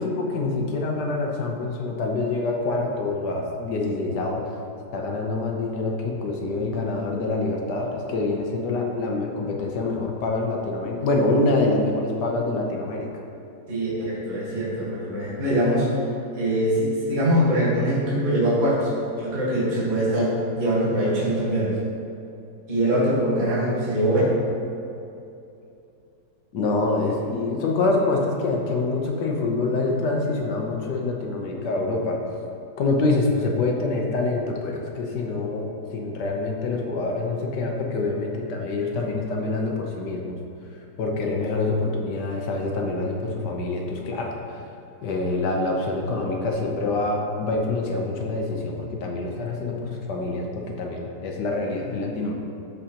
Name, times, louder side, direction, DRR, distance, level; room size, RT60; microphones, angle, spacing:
voice 1, 0.0-4.4 4.9-13.1 26.5-32.2 32.8-40.4 41.0-44.6 45.0-52.3, left 3 dB, 75° left, 0 dB, 1.5 m, -26 dB
voice 2, 13.7-15.9 16.4-18.9 19.2-21.8 22.7-24.4, right 1 dB, 30° right, -8 dB, 1.6 m, -23 dB
13.0 x 4.8 x 2.9 m, 2.7 s
omnidirectional pair, 1.8 m